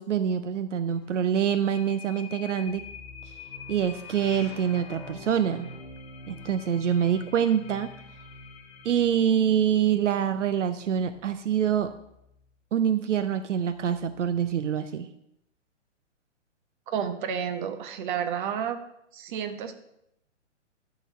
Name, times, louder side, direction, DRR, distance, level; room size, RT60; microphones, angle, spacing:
voice 1, 0.0-2.8 3.7-5.7 6.3-7.9 8.8-11.9 12.7-15.1, right 8 dB, 75° right, 10 dB, 0.6 m, -25 dB
sound 1, 0.9-9.0, left 9 dB, 55° left, 0.8 m, -47 dB
sound 2, 2.7-12.5 13.5-14.5, equal, 5° left, 0.4 m, -49 dB
voice 2, 16.9-18.8 19.1-19.8, right 8 dB, 40° right, 8 dB, 0.9 m, -31 dB
11.0 x 4.0 x 5.4 m, 0.79 s
hypercardioid pair, 130°, 37 cm